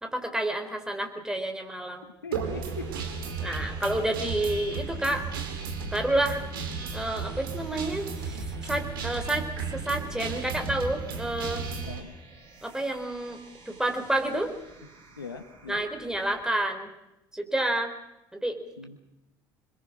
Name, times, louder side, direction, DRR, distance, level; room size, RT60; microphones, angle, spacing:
voice 1, 0.0-2.1 3.4-5.3 5.9-6.4 6.9-9.5 9.7-11.6 12.6-14.5 15.7-16.9 17.4-17.9 18.3-18.6, right 1 dB, 5° right, 5 dB, 4.0 m, -29 dB
sound 1, 2.1-16.7, right 4 dB, 50° right, 7.7 m, -53 dB
voice 2, 2.2-2.9 11.9-12.1 14.3-14.4 15.2-15.8 18.8-19.0, left 4 dB, 85° left, 8 dB, 1.7 m, -40 dB
Guitar, 2.3-12.0, right 5 dB, 75° right, 2.8 m, -34 dB
27.0 x 21.5 x 6.2 m, 0.91 s
figure-of-eight pair, 60°, 12 cm